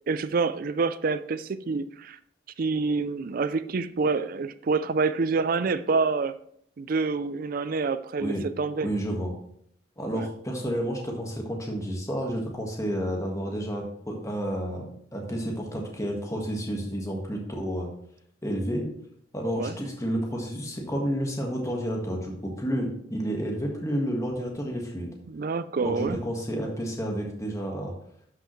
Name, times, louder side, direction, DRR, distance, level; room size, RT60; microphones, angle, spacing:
voice 1, 0.1-2.2 2.6-6.3 6.8-8.9 10.1-10.3 19.6-19.8 25.3-26.2, right 4 dB, 50° right, 14 dB, 0.4 m, -27 dB
voice 2, 8.8-9.3 10.0-17.9 18.4-18.9 19.3-25.1 25.8-27.9, equal, 15° left, 0 dB, 1.6 m, -30 dB
12.0 x 5.6 x 3.2 m, 0.68 s
head